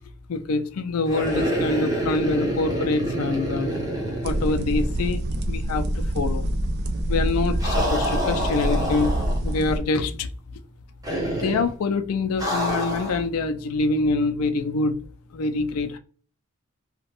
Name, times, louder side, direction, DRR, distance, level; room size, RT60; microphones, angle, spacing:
voice 1, 0.3-3.7 4.2-5.2 5.5-5.9 6.1-6.4 7.1-9.1 9.4-10.3 11.3-15.0 15.3-16.0, left 3 dB, 80° left, 0.4 m, -25 dB
sound 1, 1.1-5.2 5.5-5.6 7.6-9.6 11.0-11.7 12.4-13.2, right 1 dB, 15° right, 0.7 m, -27 dB
sound 2, 4.2-9.8, right 1 dB, 50° right, 0.4 m, -26 dB
2.9 x 2.1 x 2.9 m
head